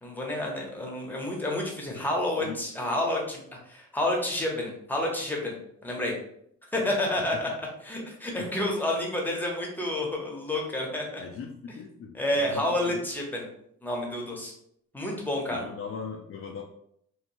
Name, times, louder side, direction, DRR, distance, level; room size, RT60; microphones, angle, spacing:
voice 1, 0.0-5.6 5.8-6.2 6.7-7.5 7.8-11.2 12.1-13.5 13.8-14.5 14.9-15.6, left 1 dB, 5° left, -1 dB, 0.7 m, -29 dB
voice 2, 11.2-13.0 15.5-16.6, left 6 dB, 45° left, 1 dB, 0.4 m, -40 dB
3.0 x 2.1 x 2.6 m, 0.71 s
cardioid pair, 90°, 30 cm